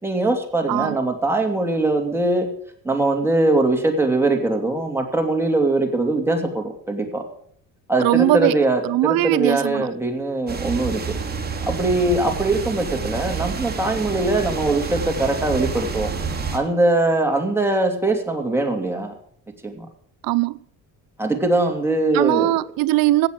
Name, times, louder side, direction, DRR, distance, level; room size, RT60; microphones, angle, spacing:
voice 1, 0.0-2.5 2.8-7.2 7.9-11.2 11.6-16.1 16.5-19.1 19.6-19.9 21.2-22.5, right 2 dB, 5° right, 2.7 m, -21 dB
voice 2, 8.0-8.5 8.8-9.9 20.2-20.6 22.1-23.3, right 17 dB, 75° right, 0.8 m, -20 dB
sound 1, 10.5-16.6, right 5 dB, 25° right, 2.8 m, -28 dB
16.0 x 7.3 x 7.7 m
cardioid pair, 120°, 35 cm